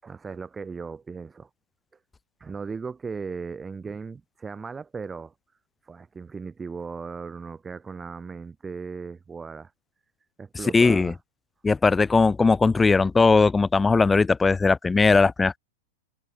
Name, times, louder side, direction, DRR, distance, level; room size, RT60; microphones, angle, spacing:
voice 1, 0.0-1.5 2.4-5.3 5.8-9.7 10.4-11.2, right 5 dB, 15° right, 5.9 m, -37 dB
voice 2, 10.7-11.1 11.6-15.6, left 4 dB, 15° left, 0.4 m, -19 dB
hypercardioid pair, 105°, 0 cm